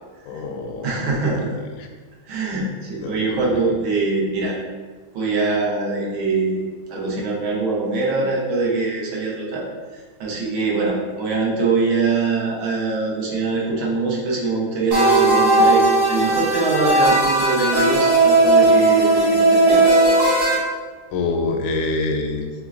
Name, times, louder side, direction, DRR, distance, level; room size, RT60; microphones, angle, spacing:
voice 1, 0.3-1.1 3.0-3.2 21.1-22.5, left 3 dB, 85° left, 3 dB, 1.5 m, -25 dB
voice 2, 0.8-1.5 2.3-4.6 5.1-6.6 6.9-9.6 9.9-19.9, right 3 dB, 75° right, -3 dB, 1.7 m, -23 dB
sound 1, 14.9-20.5, right 2 dB, 50° right, 1.7 m, -16 dB
5.5 x 3.5 x 2.4 m, 1.4 s
omnidirectional pair, 2.3 m